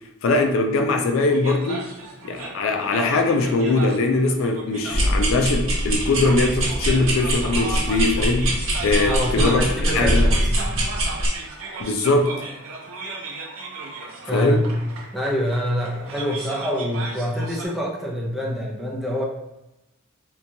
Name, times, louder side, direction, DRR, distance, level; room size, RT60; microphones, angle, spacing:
voice 1, 0.2-1.9 2.2-9.7 9.9-10.3 11.8-12.3 14.3-14.6, left 2 dB, 70° left, 4 dB, 0.4 m, -21 dB
sound 1, 1.3-17.7, right 3 dB, 90° right, 0.6 m, -36 dB
sound 2, 4.9-11.3, right 1 dB, 70° right, 0.9 m, -23 dB
voice 2, 9.1-10.8 14.3-19.2, equal, ahead, -4 dB, 0.5 m, -26 dB
2.9 x 2.3 x 2.6 m, 0.93 s
head